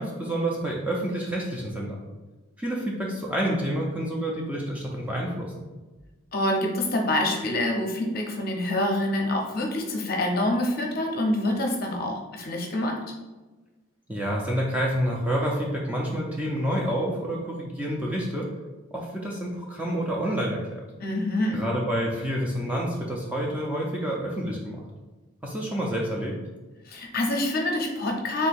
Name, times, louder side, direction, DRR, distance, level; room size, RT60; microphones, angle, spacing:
voice 1, 0.0-2.0 2.6-5.7 14.1-18.5 18.9-20.8 21.5-24.8 25.4-26.4, equal, 5° right, -3 dB, 0.4 m, -28 dB
voice 2, 6.3-13.0 21.0-21.6 26.9-28.5, left 1 dB, 45° left, 1 dB, 0.6 m, -26 dB
3.6 x 2.7 x 4.2 m, 1.2 s
head